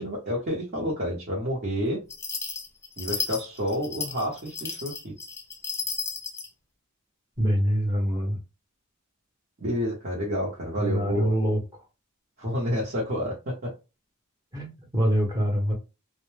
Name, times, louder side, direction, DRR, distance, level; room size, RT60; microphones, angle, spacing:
voice 1, 0.0-2.0 3.0-5.1 9.6-11.3 12.4-13.7, equal, 45° right, 0.8 m, -29 dB
sound 1, 2.1-6.5, left 5 dB, 10° left, 0.3 m, -33 dB
voice 2, 7.4-8.4 10.8-11.6 14.5-15.7, equal, 15° right, 0.8 m, -24 dB
2.1 x 2.1 x 3.1 m
head